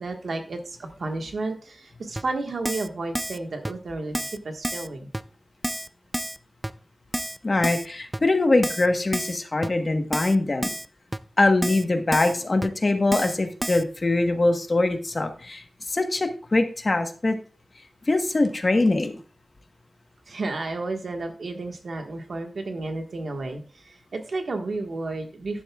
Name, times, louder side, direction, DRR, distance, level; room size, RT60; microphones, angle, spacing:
voice 1, 0.0-5.1 20.3-25.6, right 3 dB, 85° right, 4 dB, 1.5 m, -32 dB
Keyboard (musical), 2.2-2.3 2.6-2.9 3.1-3.4 3.6-3.7 4.1-4.4 4.6-4.9 5.1-5.2 5.6-5.9 6.1-6.4 6.6-6.7 7.1-7.4 7.6-7.9 8.1-8.2 8.6-8.9 9.1-9.4 9.6-9.7 10.1-10.4 10.6-10.9 11.1-11.2 11.6-11.8 12.1-12.3 12.6-12.7 13.1-13.3 13.6-13.8, right 1 dB, 15° right, 0.4 m, -29 dB
voice 2, 7.4-10.7 11.4-17.4 18.1-19.2, left 2 dB, 40° left, 6 dB, 1.2 m, -23 dB
11.0 x 10.5 x 2.4 m, 0.38 s
wide cardioid pair, 105°, 0 cm